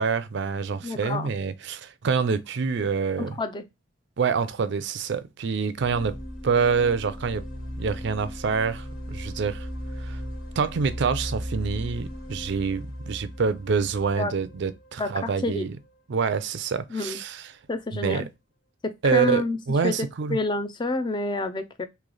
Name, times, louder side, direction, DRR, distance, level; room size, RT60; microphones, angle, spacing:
voice 1, 0.0-3.4 4.2-6.2 6.4-7.4 7.8-9.7 10.0-10.2 10.6-15.7 16.1-17.5 18.0-18.3 19.0-20.4, right 5 dB, 60° right, 0.4 m, -26 dB
voice 2, 0.8-1.3 3.2-3.6 14.2-14.3 15.0-15.7 16.9-17.2 17.7-18.3 18.8-19.6 19.8-20.0 20.3-21.9, left 2 dB, 25° left, 0.4 m, -28 dB
sound 1, 5.7-15.5, equal, 85° left, 0.9 m, -37 dB
3.1 x 2.8 x 3.7 m
head